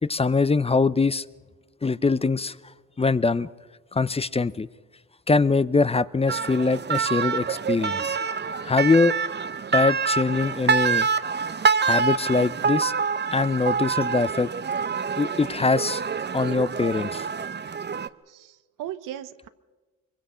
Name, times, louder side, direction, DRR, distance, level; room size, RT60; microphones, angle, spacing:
voice 1, 0.0-1.2 1.8-2.6 3.0-3.5 3.9-4.7 5.3-8.2 8.6-9.1 9.7-11.1 11.8-12.9 13.3-14.5 15.2-16.0 16.3-17.3, left 4 dB, 20° left, 16 dB, 0.6 m, -23 dB
sound 1, 6.3-18.1, right 6 dB, 35° right, 0.8 m, -26 dB
voice 2, 18.3-19.5, right 11 dB, 90° right, 12 dB, 0.9 m, -38 dB
23.5 x 23.0 x 5.7 m, 1.3 s
cardioid pair, 80°, 31 cm